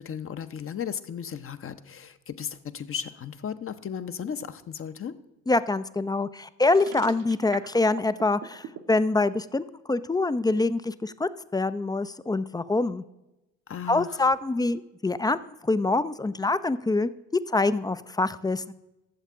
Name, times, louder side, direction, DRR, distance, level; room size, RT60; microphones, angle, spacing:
voice 1, 0.0-5.1 13.7-14.3, left 8 dB, 35° left, 11 dB, 0.7 m, -35 dB
voice 2, 5.5-13.0 13.9-15.4 15.6-17.1 17.5-18.7, left 2 dB, 10° left, 15 dB, 0.4 m, -25 dB
sound 1, 6.7-8.8, right 10 dB, 60° right, 0.9 m, -40 dB
12.5 x 7.3 x 3.6 m, 0.96 s
hypercardioid pair, 50°, 38 cm